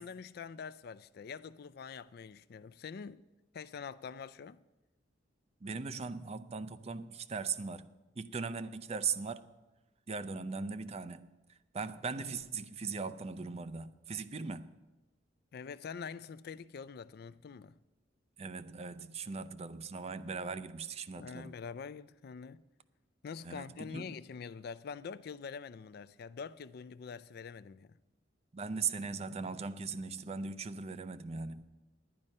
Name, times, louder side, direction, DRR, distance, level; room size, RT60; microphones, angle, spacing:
voice 1, 0.0-3.2 3.5-4.6 15.5-17.8 21.1-22.6 23.2-27.9, left 6 dB, 55° left, 0.4 m, -45 dB
voice 2, 5.6-7.9 8.1-9.5 10.1-14.8 18.4-21.5 23.4-24.2 28.5-31.6, right 5 dB, 35° right, 0.5 m, -39 dB
10.5 x 9.7 x 5.4 m
head